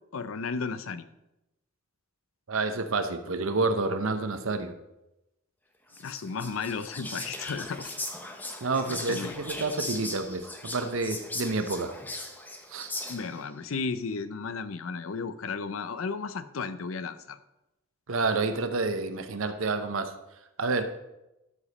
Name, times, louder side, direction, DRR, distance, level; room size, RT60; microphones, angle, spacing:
voice 1, 0.1-1.1 6.0-7.9 8.9-9.4 13.1-17.4, left 5 dB, 90° left, 13 dB, 0.6 m, -34 dB
voice 2, 2.5-4.7 8.6-11.9 12.7-12.9 18.1-20.1 20.6-20.8, right 3 dB, 85° right, 9 dB, 0.8 m, -29 dB
Whispering, 5.9-13.5, left 1 dB, 10° left, 0.9 m, -39 dB
12.0 x 5.1 x 4.1 m, 0.92 s
head